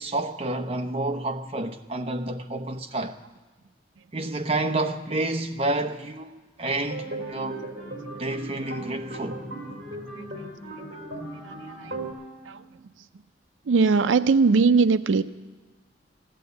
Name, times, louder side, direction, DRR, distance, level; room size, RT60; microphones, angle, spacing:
voice 1, 0.0-3.2 4.1-7.6 8.2-9.4, right 2 dB, 30° right, 0.8 m, -29 dB
Wind instrument woodwind instrument, 6.6-12.6, right 1 dB, ahead, 6.8 m, -47 dB
sound 1, 6.9-12.1, right 2 dB, 50° right, 3.7 m, -37 dB
voice 2, 11.3-12.0 12.5-12.7 13.7-15.2, right 4 dB, 90° right, 0.4 m, -21 dB
15.0 x 11.0 x 8.1 m
head